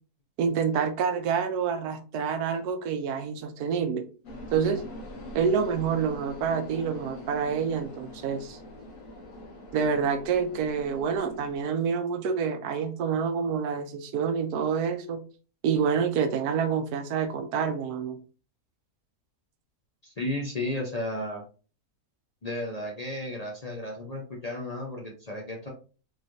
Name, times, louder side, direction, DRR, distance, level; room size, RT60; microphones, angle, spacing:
voice 1, 0.4-4.0 4.5-4.8 5.3-8.6 9.7-15.2 15.6-18.2, right 6 dB, 85° right, 8 dB, 1.1 m, -27 dB
sound 1, 4.2-11.6, left 1 dB, 60° left, 1.3 m, -43 dB
voice 2, 20.0-21.4 22.4-25.7, left 1 dB, 45° left, -1 dB, 0.5 m, -33 dB
3.9 x 3.1 x 2.6 m, 0.37 s
omnidirectional pair, 1.6 m